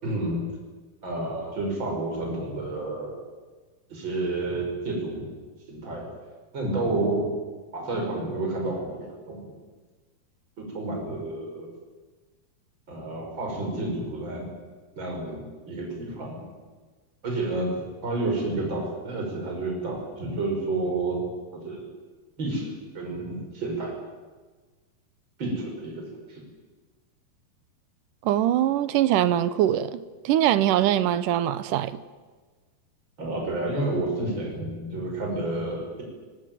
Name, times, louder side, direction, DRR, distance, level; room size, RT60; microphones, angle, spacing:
voice 1, 0.0-0.4 1.0-3.2 3.9-5.3 5.7-6.1 6.5-7.3 7.7-9.5 10.6-11.7 12.9-14.5 15.0-15.4 15.7-16.4 17.2-21.3 21.5-21.9 22.4-23.9 25.4-26.0 26.3-26.4 33.2-36.0, right 2 dB, 30° right, 6.5 m, -30 dB
voice 2, 28.2-31.9, right 12 dB, 70° right, 2.2 m, -22 dB
24.5 x 20.0 x 9.3 m
omnidirectional pair, 4.4 m